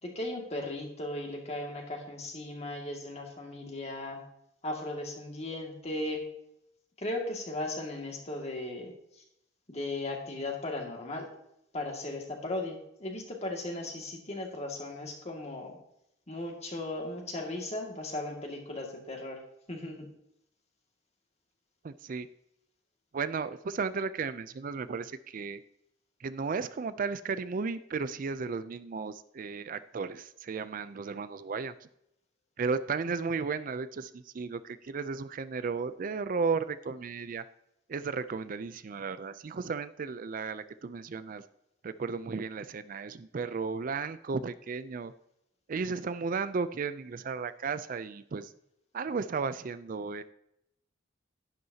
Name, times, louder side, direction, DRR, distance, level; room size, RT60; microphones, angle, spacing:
voice 1, 0.0-4.2 4.6-6.2 7.0-9.2 9.7-11.3 11.7-15.8 16.3-19.4 19.7-20.1, left 2 dB, 35° left, 1 dB, 2.1 m, -37 dB
voice 2, 21.8-22.3 23.1-25.6 26.2-31.7 32.6-37.4 37.9-41.4 41.8-45.1 45.7-48.5 48.9-50.2, right 5 dB, 45° right, 14 dB, 0.4 m, -34 dB
11.0 x 10.5 x 2.8 m, 0.79 s
head